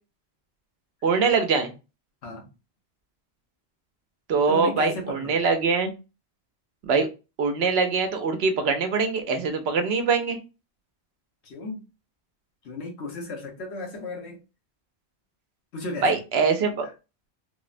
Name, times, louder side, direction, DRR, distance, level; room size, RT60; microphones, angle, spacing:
voice 1, 1.0-1.7 4.3-5.9 6.8-7.1 7.4-10.4 16.0-16.9, right 4 dB, 75° right, 0.8 m, -23 dB
voice 2, 4.5-5.4 11.4-11.9 12.6-14.4 15.7-16.2, left 2 dB, 85° left, 1.2 m, -35 dB
3.3 x 2.0 x 2.4 m
omnidirectional pair, 1.1 m